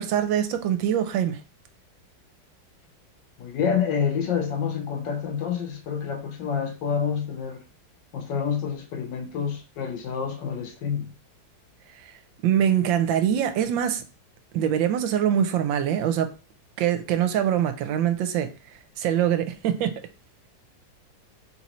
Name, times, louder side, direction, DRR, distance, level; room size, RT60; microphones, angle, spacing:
voice 1, 0.0-1.4 12.0-12.1 12.4-14.0 14.5-16.3 16.8-18.5 19.0-20.0, right 9 dB, 85° right, 1.3 m, -23 dB
voice 2, 3.4-7.6 8.1-11.1, left 7 dB, 70° left, 1.5 m, -28 dB
4.2 x 3.9 x 3.0 m
omnidirectional pair, 2.1 m